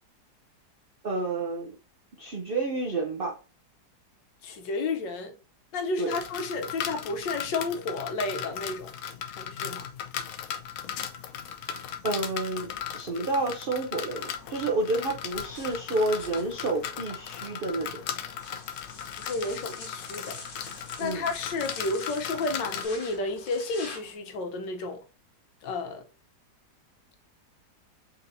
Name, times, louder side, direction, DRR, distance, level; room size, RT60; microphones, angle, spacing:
voice 1, 1.0-1.8 2.2-3.4 6.0-6.1 12.0-12.7 12.9-18.0 21.0-21.2, right 2 dB, 90° right, 0.4 m, -29 dB
voice 2, 4.4-5.3 5.7-8.9 9.4-9.9 19.0-25.0 25.6-26.0, left 3 dB, 90° left, 1.5 m, -32 dB
sound 1, 6.1-22.9, left 8 dB, 75° left, 0.7 m, -37 dB
sound 2, 14.1-24.1, left 3 dB, 55° left, 1.5 m, -46 dB
4.0 x 4.0 x 2.6 m
omnidirectional pair, 1.9 m